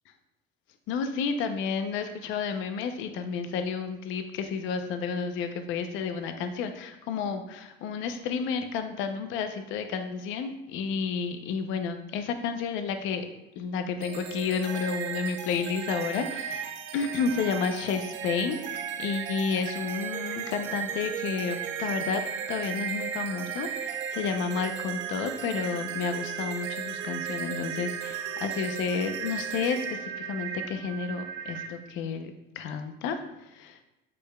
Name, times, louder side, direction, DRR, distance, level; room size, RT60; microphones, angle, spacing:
voice 1, 0.9-13.3 13.6-22.2 22.5-32.3 32.6-33.9, left 5 dB, 65° left, 7 dB, 0.7 m, -31 dB
sound 1, 14.0-31.7, right 8 dB, 60° right, 0.9 m, -35 dB
8.5 x 6.7 x 2.3 m, 0.94 s
cardioid pair, 155°, 21 cm